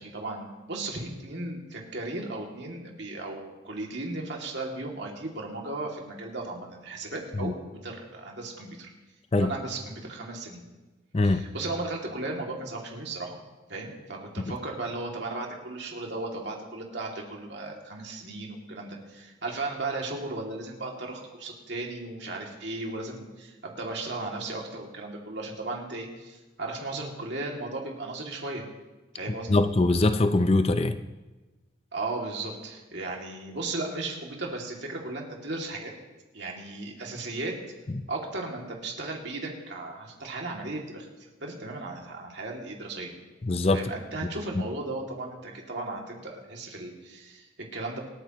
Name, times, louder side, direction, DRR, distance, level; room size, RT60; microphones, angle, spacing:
voice 1, 0.0-7.6 7.8-8.9 9.4-10.6 11.2-13.4 13.7-28.6 29.1-29.6 31.9-35.9 36.3-37.5 38.1-41.1 41.4-43.1 43.7-48.0, right 2 dB, 60° right, -1 dB, 2.5 m, -36 dB
voice 2, 11.1-11.5 14.5-14.6 29.5-31.0 37.9-38.0 43.4-43.8, left 2 dB, 30° left, 10 dB, 0.5 m, -23 dB
26.5 x 9.2 x 3.0 m, 1.2 s
head